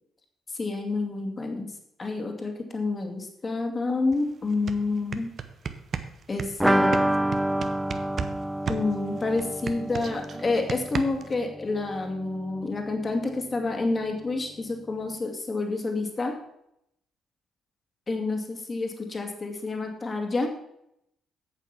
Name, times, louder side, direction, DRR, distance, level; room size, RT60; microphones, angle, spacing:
voice 1, 0.5-5.3 6.3-7.0 8.7-16.3 18.1-20.5, left 3 dB, 35° left, 3 dB, 2.2 m, -29 dB
sound 1, 4.1-4.2 4.5-8.4 8.7-11.4, right 6 dB, 50° right, 0.8 m, -34 dB
sound 2, 6.6-12.2 12.5-12.6 12.8-12.9, right 1 dB, 5° right, 0.6 m, -28 dB
8.6 x 8.2 x 5.8 m, 0.78 s
figure-of-eight pair, 40°, 0 cm